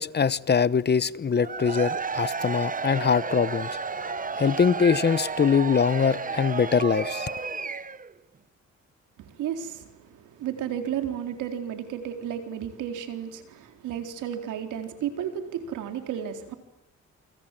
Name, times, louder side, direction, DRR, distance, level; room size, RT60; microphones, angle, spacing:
voice 1, 0.0-7.4, left 6 dB, 35° left, 1.0 m, -23 dB
Cheering / Crowd, 1.4-8.1, right 5 dB, 25° right, 1.2 m, -32 dB
voice 2, 9.2-16.5, right 9 dB, 85° right, 4.0 m, -33 dB
28.5 x 25.5 x 7.6 m
cardioid pair, 90°, 30 cm